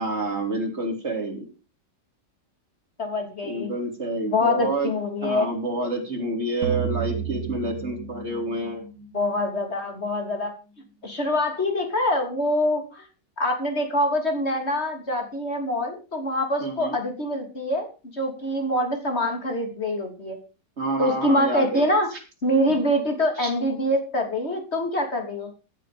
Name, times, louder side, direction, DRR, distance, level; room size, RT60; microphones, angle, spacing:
voice 1, 0.0-1.5 3.4-4.9 5.2-8.8 16.6-17.0 20.8-21.9 22.7-22.8 23.4-23.5, right 2 dB, 35° right, 3 dB, 3.6 m, -28 dB
voice 2, 3.0-3.7 4.3-5.5 9.1-10.5 11.0-13.0 13.4-20.4 21.0-22.1 22.4-25.5, left 1 dB, 35° left, 4 dB, 3.4 m, -25 dB
sound 1, 6.6-9.9, right 8 dB, 60° right, 1.8 m, -32 dB
15.5 x 8.4 x 5.2 m, 0.33 s
omnidirectional pair, 1.9 m